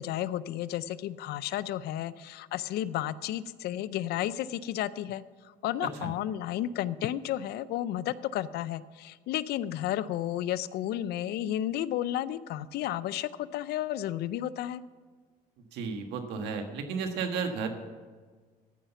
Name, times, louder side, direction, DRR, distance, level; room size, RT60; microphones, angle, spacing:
voice 1, 0.0-14.8, left 12 dB, 75° left, 17 dB, 0.5 m, -32 dB
voice 2, 15.7-17.7, right 5 dB, 85° right, 5 dB, 1.5 m, -33 dB
14.0 x 5.7 x 6.9 m, 1.5 s
cardioid pair, 110°, 17 cm